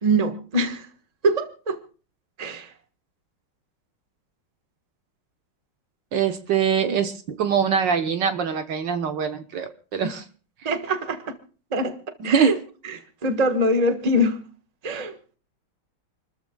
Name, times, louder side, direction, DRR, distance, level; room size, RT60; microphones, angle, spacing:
voice 1, 0.0-0.9 1.2-1.8 2.4-2.7 10.6-11.3 11.7-11.9 12.2-12.6 12.8-14.4 14.8-15.1, right 1 dB, 20° right, 1.2 m, -23 dB
voice 2, 6.1-10.2 12.2-12.6, right 7 dB, 65° right, 1.7 m, -23 dB
29.0 x 14.0 x 2.3 m
omnidirectional pair, 2.3 m